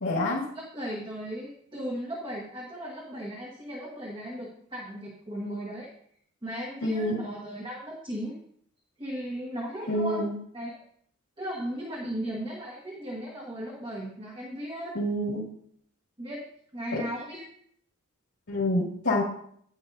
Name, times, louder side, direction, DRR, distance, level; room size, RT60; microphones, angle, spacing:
voice 1, 0.0-0.4 6.8-7.2 9.9-10.3 14.9-15.4 16.9-17.0 18.5-19.2, left 1 dB, 85° left, -5 dB, 2.1 m, -27 dB
voice 2, 0.5-5.9 6.4-8.4 9.0-10.3 10.5-10.8 11.4-15.0 16.2-16.5 16.7-17.4, right 1 dB, 25° right, -2 dB, 1.4 m, -36 dB
10.5 x 9.9 x 2.7 m, 0.66 s
head